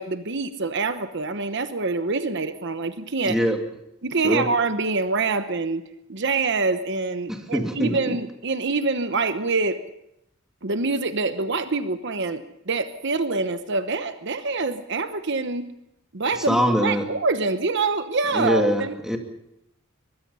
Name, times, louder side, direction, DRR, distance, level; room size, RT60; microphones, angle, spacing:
voice 1, 0.0-3.4 4.0-5.8 6.1-9.8 10.6-15.7 16.1-19.0, right 3 dB, 60° right, 10 dB, 1.0 m, -25 dB
voice 2, 3.3-3.6 4.2-4.5 7.3-8.1 16.5-17.1 18.3-19.2, equal, 5° right, 3 dB, 2.5 m, -23 dB
23.5 x 21.0 x 5.6 m, 0.81 s
head